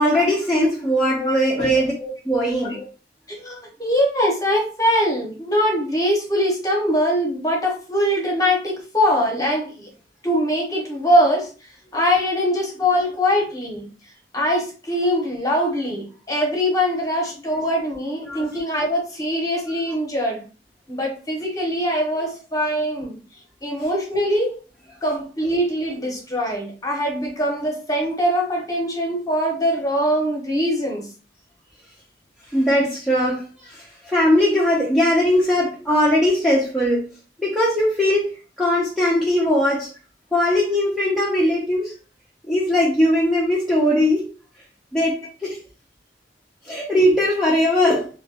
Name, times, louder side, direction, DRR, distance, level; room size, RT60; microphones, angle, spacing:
voice 1, 0.0-1.9 2.3-2.8 18.2-18.6 32.5-37.0 37.4-39.9 40.3-41.9 42.5-44.3 44.9-45.1 45.4-45.6 46.6-48.1, left 1 dB, ahead, -7 dB, 0.6 m, -20 dB
voice 2, 1.1-2.1 2.6-2.8 3.4-9.9 10.2-11.5 11.9-13.9 14.3-20.4 20.9-23.1 23.6-24.6 25.0-31.1, equal, 20° left, -1 dB, 0.9 m, -22 dB
3.0 x 2.2 x 2.7 m, 0.36 s
head